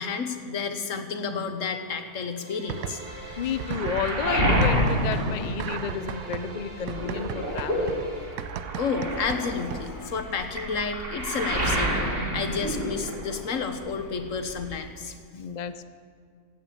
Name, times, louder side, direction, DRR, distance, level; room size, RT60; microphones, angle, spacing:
voice 1, 0.0-3.0 8.8-12.1 12.3-15.2, left 5 dB, 60° left, 7 dB, 1.5 m, -31 dB
sound 1, 2.3-8.3, right 1 dB, 65° right, 5.0 m, -44 dB
sound 2, 2.7-3.3 3.6-10.1, right 10 dB, 90° right, 1.2 m, -37 dB
Waves surf, 3.1-6.3 6.6-13.6 13.8-14.8, equal, 35° right, 2.8 m, -29 dB
voice 2, 3.4-8.1 15.3-15.8, left 7 dB, 85° left, 11 dB, 0.3 m, -31 dB
16.5 x 8.9 x 8.3 m, 2.2 s
omnidirectional pair, 1.6 m